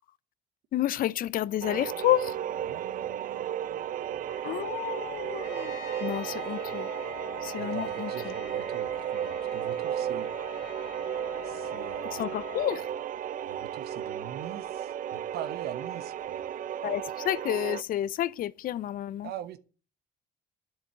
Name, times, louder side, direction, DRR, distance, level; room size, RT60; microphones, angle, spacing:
voice 1, 0.7-2.4 4.3-6.9 7.4-8.3 12.1-12.9 16.8-19.3, left 12 dB, 55° left, 0.5 m, -30 dB
sound 1, 1.6-17.8, right 10 dB, 55° right, 0.6 m, -34 dB
voice 2, 2.6-4.7 7.6-10.3 11.4-12.4 13.5-16.4 19.2-19.6, right 10 dB, 70° right, 1.1 m, -43 dB
Trumpet, 5.4-12.7, left 12 dB, 85° left, 1.4 m, -45 dB
10.5 x 7.8 x 7.8 m
cardioid pair, 110°, 17 cm